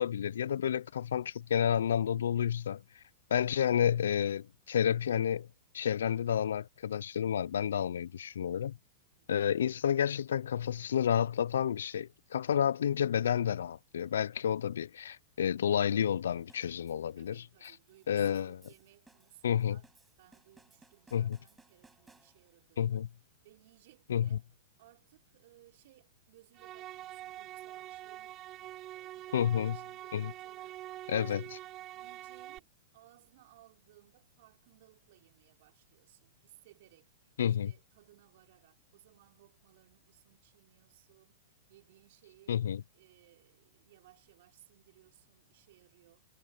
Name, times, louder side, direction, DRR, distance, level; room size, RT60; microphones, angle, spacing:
voice 1, 0.0-2.8 3.3-5.5 5.7-8.7 9.3-17.7 18.1-18.6 19.4-19.8 21.1-21.4 22.8-23.1 24.1-24.4 29.3-29.8 30.1-30.3 31.1-31.6 37.4-37.7 42.5-42.8, left 9 dB, 75° left, 0.6 m, -30 dB
voice 2, 9.1-9.5 17.2-19.9 20.2-23.1 23.4-24.4 24.8-31.3 31.9-32.7 32.9-37.1 37.4-41.4 41.7-42.6 42.9-46.2, right 16 dB, 60° right, 4.8 m, -62 dB
sound 1, 16.5-22.7, right 3 dB, 10° right, 7.4 m, -64 dB
sound 2, 26.5-32.6, right 14 dB, 35° right, 1.5 m, -45 dB
hypercardioid pair, 110°, 0 cm